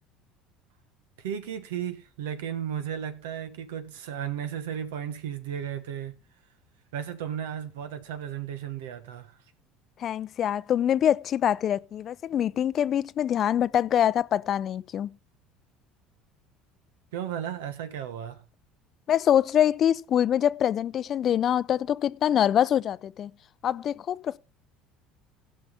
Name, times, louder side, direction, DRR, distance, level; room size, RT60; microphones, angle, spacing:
voice 1, 1.2-6.2 6.9-9.4 17.1-18.5, right 9 dB, 85° right, 1.1 m, -34 dB
voice 2, 10.0-15.1 19.1-23.3 23.6-24.4, left 10 dB, 50° left, 0.4 m, -24 dB
16.5 x 5.6 x 4.0 m
supercardioid pair, 85°, 0 cm